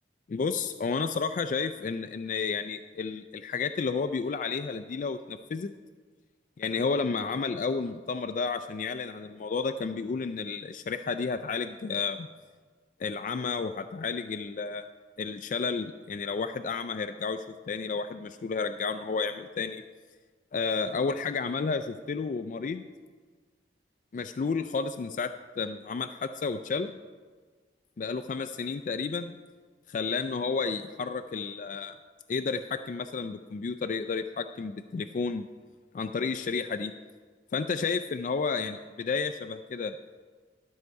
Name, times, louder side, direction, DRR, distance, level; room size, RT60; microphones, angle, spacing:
voice 1, 0.3-5.7 6.6-12.3 13.0-14.9 15.2-17.4 17.7-19.8 20.5-22.8 24.1-26.9 28.0-29.4 29.9-32.0 32.3-35.5 35.9-36.9 37.5-40.0, left 5 dB, 45° left, 9 dB, 0.3 m, -31 dB
12.0 x 6.5 x 4.6 m, 1.5 s
head